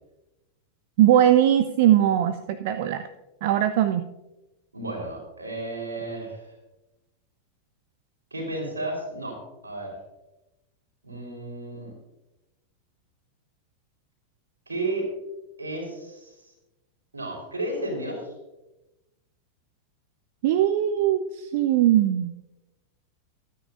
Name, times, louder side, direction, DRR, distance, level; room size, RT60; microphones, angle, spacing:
voice 1, 1.0-3.0 3.4-4.1 20.4-22.3, right 11 dB, 50° right, 12 dB, 0.5 m, -20 dB
voice 2, 4.7-6.5 8.3-10.0 11.0-11.9 14.7-15.1 15.6-16.5 17.1-18.3, right 2 dB, 75° right, 1 dB, 4.1 m, -33 dB
23.0 x 9.4 x 2.6 m, 1.0 s
figure-of-eight pair, 90°, 0 cm